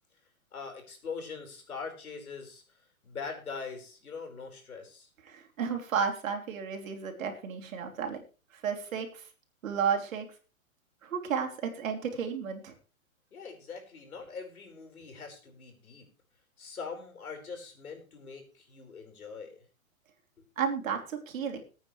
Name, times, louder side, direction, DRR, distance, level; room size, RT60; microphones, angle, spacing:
voice 1, 0.5-5.1 7.8-8.0 13.3-16.1 16.6-19.6 20.4-20.5, left 5 dB, 85° left, 4 dB, 4.9 m, -42 dB
voice 2, 5.2-8.2 8.5-9.3 9.6-10.3 11.0-12.7 20.6-21.6, right 6 dB, 65° right, 3 dB, 3.2 m, -32 dB
20.5 x 8.8 x 3.2 m, 0.35 s
hypercardioid pair, 130°, 42 cm